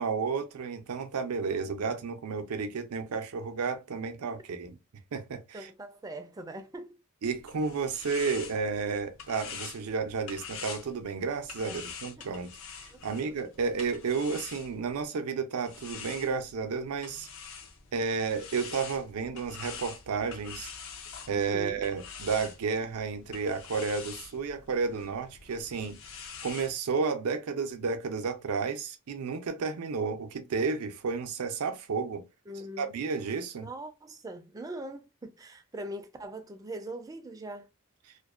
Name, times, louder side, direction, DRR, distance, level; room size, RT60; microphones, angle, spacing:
voice 1, 0.0-4.8 5.1-5.7 7.2-17.3 17.9-20.7 21.3-26.0 26.4-32.2 32.8-33.7, right 5 dB, 80° right, 0.5 m, -32 dB
voice 2, 5.5-7.0 11.6-11.8 12.2-12.3 12.9-13.4 21.3-21.9 32.5-32.9 33.6-37.7, right 1 dB, 15° right, 0.4 m, -42 dB
sound 1, 7.2-15.1 15.6-26.7, left 6 dB, 65° left, 0.5 m, -45 dB
2.5 x 2.1 x 2.4 m
head